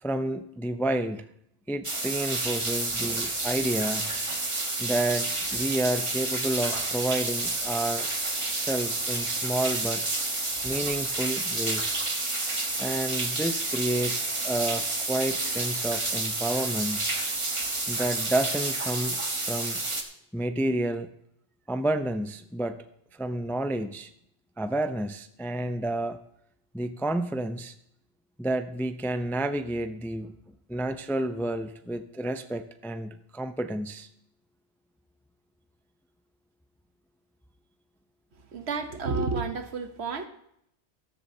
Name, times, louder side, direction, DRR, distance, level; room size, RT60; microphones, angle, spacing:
voice 1, 0.0-1.2 1.7-4.1 4.8-8.1 8.5-10.1 10.6-12.0 12.8-17.0 17.9-19.8 20.3-21.1 21.7-22.8 23.1-24.1 24.6-26.2 26.7-27.7 28.4-30.3 30.7-34.1, right 1 dB, 5° left, 9 dB, 0.4 m, -30 dB
sound 1, 1.8-20.0, right 2 dB, 30° right, 1.3 m, -30 dB
voice 2, 38.5-40.3, right 4 dB, 75° right, 8 dB, 1.3 m, -30 dB
13.5 x 13.5 x 2.8 m, 0.75 s
omnidirectional pair, 1.1 m